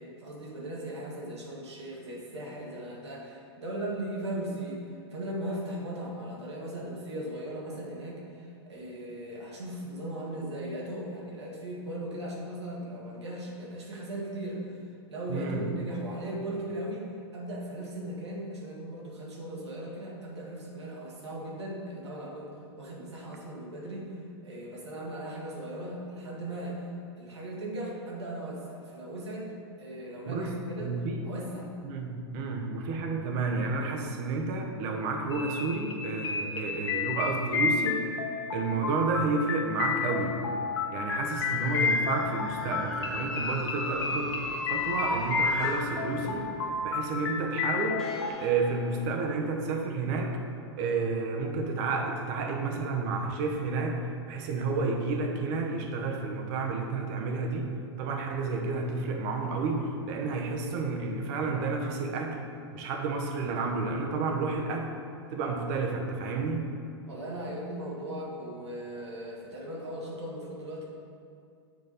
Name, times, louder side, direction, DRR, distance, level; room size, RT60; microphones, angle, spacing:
voice 1, 0.0-14.8 15.1-26.9 27.2-29.5 29.8-31.0 31.3-31.7 67.1-70.9, right 1 dB, 85° right, -4 dB, 1.7 m, -38 dB
voice 2, 15.3-15.6 30.3-30.5 30.8-31.3 31.8-38.1 38.5-40.4 40.9-46.5 46.8-50.3 50.8-54.0 54.3-57.7 58.0-62.5 62.7-64.9 65.3-66.7, right 3 dB, 50° right, 2 dB, 1.0 m, -31 dB
sound 1, 35.3-48.3, left 5 dB, 75° left, 0.7 m, -31 dB
sound 2, 41.3-46.9 48.0-49.6, equal, ahead, 1.2 m, -38 dB
7.0 x 4.8 x 4.1 m, 2.4 s
hypercardioid pair, 110°, 14 cm